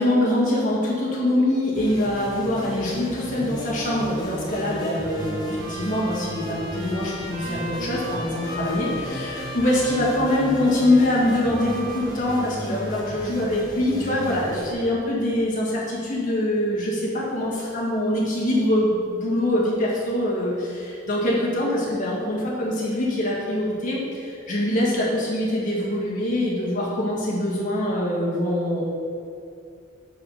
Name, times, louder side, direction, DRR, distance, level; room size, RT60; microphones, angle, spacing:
voice 1, 0.0-28.8, left 1 dB, 40° left, -5 dB, 1.7 m, -24 dB
sound 1, 1.8-14.7, equal, 20° left, 1.0 m, -35 dB
Trumpet, 4.4-13.6, equal, 50° right, 1.7 m, -39 dB
5.6 x 5.5 x 5.7 m, 2.5 s
head